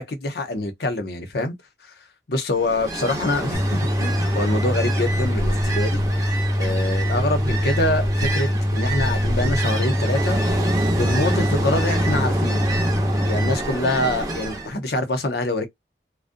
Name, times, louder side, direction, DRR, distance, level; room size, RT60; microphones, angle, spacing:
voice 1, 0.0-1.5 2.3-6.0 6.6-10.4 11.0-12.6 13.2-15.7, left 2 dB, 60° left, 0.7 m, -25 dB
Ocean, 2.5-14.7, right 1 dB, 20° right, 0.8 m, -28 dB
sound 1, 3.5-13.5, equal, 10° left, 0.4 m, -23 dB
2.5 x 2.0 x 2.6 m
head